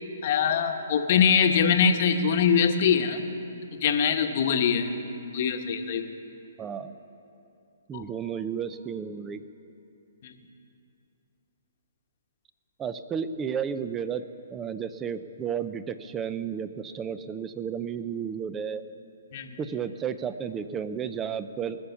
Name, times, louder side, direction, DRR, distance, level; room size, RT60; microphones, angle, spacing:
voice 1, 0.2-3.3 3.7-4.9 5.3-6.1 7.9-8.1 10.2-10.3 19.3-19.6, left 7 dB, 45° left, 6 dB, 1.1 m, -23 dB
voice 2, 6.6-6.9 7.9-9.4 12.8-14.2 14.5-18.8 19.6-21.8, right 7 dB, 15° right, 12 dB, 0.5 m, -32 dB
19.5 x 7.0 x 7.0 m, 2.8 s
hypercardioid pair, 145°, 0 cm